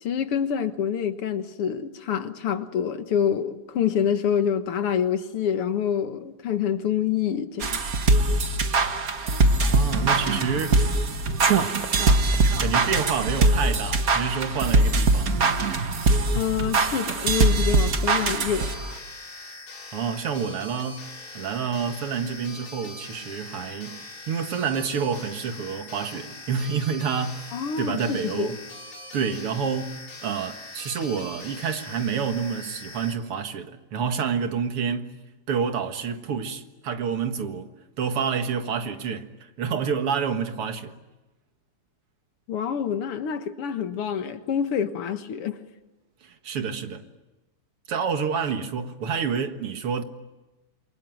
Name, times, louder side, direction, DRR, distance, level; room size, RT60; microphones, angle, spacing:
voice 1, 0.0-7.8 16.4-18.7 27.5-28.5 42.5-45.6, left 8 dB, 85° left, 2.4 m, -26 dB
sound 1, 7.6-19.0, right 3 dB, 45° right, 1.8 m, -22 dB
voice 2, 9.6-10.8 11.5-11.9 12.6-15.4 19.9-27.5 27.8-28.6 29.1-35.2 35.5-37.7 38.0-41.0 46.2-47.0 47.9-50.0, right 6 dB, 85° right, 2.6 m, -28 dB
sound 2, 11.6-12.2 12.5-13.5 13.9-14.6 15.1-15.3 16.3-18.1 18.5-18.6, left 3 dB, 40° left, 5.2 m, -40 dB
sound 3, 18.6-33.2, left 2 dB, 65° left, 4.0 m, -42 dB
28.0 x 23.0 x 9.2 m
omnidirectional pair, 2.4 m